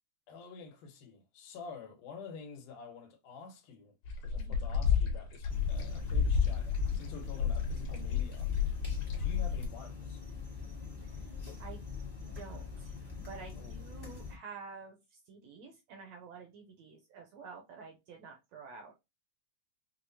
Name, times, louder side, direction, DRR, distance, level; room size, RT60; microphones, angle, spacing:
voice 1, 0.3-4.0 4.2-8.5 9.2-10.2 13.5-13.7, left 4 dB, 85° left, 2.4 m, -48 dB
sound 1, 4.0-9.7, left 6 dB, 65° left, 2.3 m, -31 dB
sound 2, 5.5-14.4, left 4 dB, 40° left, 0.6 m, -44 dB
voice 2, 12.3-12.9 13.3-15.0 15.3-18.9, right 5 dB, 75° right, 1.6 m, -49 dB
6.0 x 2.1 x 2.6 m
omnidirectional pair, 3.5 m